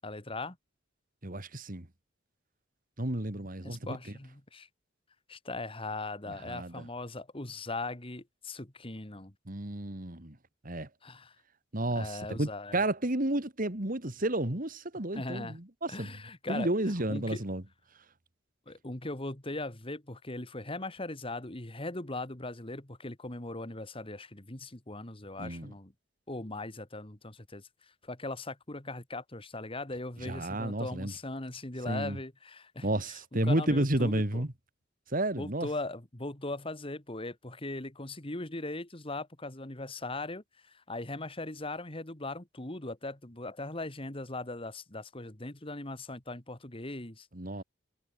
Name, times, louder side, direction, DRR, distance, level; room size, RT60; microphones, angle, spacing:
voice 1, 0.0-0.6 3.6-4.7 5.3-9.3 11.0-11.4 11.9-12.8 15.1-15.6 15.9-16.7 17.1-17.4 18.7-25.9 26.3-27.7 28.0-34.4 35.4-47.3, left 2 dB, 30° left, 2.3 m, -39 dB
voice 2, 1.2-1.9 3.0-4.0 6.5-6.9 9.5-10.4 10.6-10.9 11.7-16.1 16.5-17.6 25.4-25.7 30.2-31.1 31.9-32.2 32.8-34.5 35.1-35.7 47.3-47.6, right 1 dB, 45° right, 2.5 m, -31 dB
head